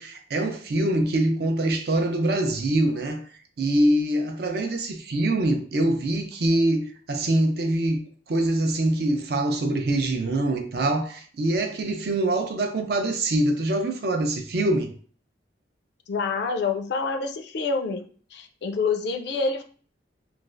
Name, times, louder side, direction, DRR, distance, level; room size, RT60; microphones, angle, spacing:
voice 1, 0.0-3.3 3.6-8.0 8.3-14.9, right 1 dB, 55° right, 0.5 m, -24 dB
voice 2, 16.1-18.1 18.3-19.6, left 4 dB, 65° left, 0.4 m, -27 dB
3.1 x 2.3 x 2.4 m
head